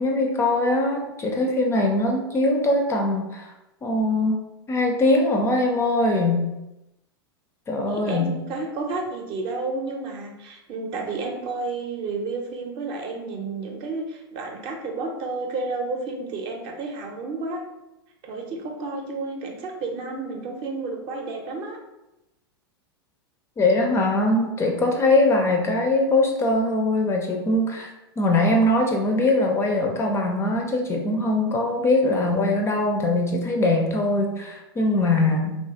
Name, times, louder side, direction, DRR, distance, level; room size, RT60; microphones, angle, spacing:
voice 1, 0.0-3.5 3.8-4.4 4.7-6.5 7.7-8.3 23.6-27.9 28.2-35.6, left 2 dB, 20° left, 2 dB, 0.4 m, -22 dB
voice 2, 7.9-17.6 18.2-21.8, right 3 dB, 40° right, 2 dB, 0.6 m, -31 dB
2.8 x 2.3 x 2.7 m, 0.96 s
hypercardioid pair, 100°, 13 cm